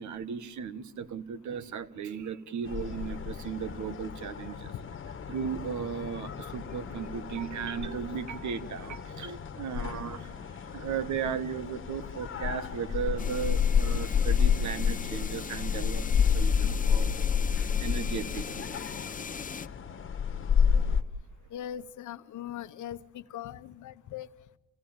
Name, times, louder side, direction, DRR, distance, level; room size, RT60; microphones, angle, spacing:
voice 1, 0.0-4.7 5.3-18.9, right 7 dB, 70° right, 14 dB, 1.5 m, -36 dB
sound 1, 2.7-21.0, left 7 dB, 40° left, 1.4 m, -30 dB
sound 2, 13.2-19.7, left 6 dB, 25° left, 0.8 m, -40 dB
voice 2, 21.5-24.3, left 11 dB, 75° left, 13 dB, 1.0 m, -40 dB
28.5 x 16.5 x 8.9 m, 1.3 s
cardioid pair, 90°, 30 cm